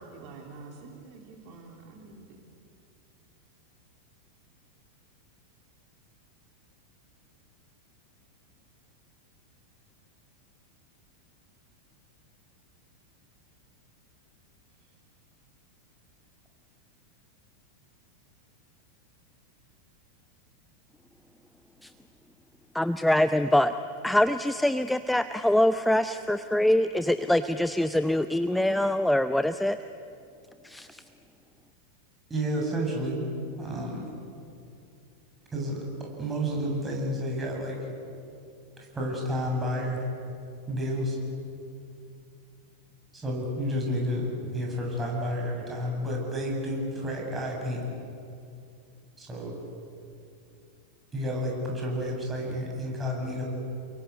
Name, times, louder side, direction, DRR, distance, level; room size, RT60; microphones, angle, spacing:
voice 1, 0.0-2.4 14.8-14.9, right 3 dB, 40° right, 1 dB, 3.3 m, -47 dB
voice 2, 22.7-23.7 24.0-29.8 30.6-31.0, left 1 dB, 5° left, 11 dB, 0.7 m, -24 dB
voice 3, 32.3-33.2 33.6-34.1 35.5-35.8 36.2-37.8 38.8-40.1 40.7-41.2 43.1-47.8 49.2-49.5 51.1-53.4, equal, 15° right, -1 dB, 7.7 m, -30 dB
29.5 x 22.5 x 8.5 m, 2.6 s
figure-of-eight pair, 90°, 0 cm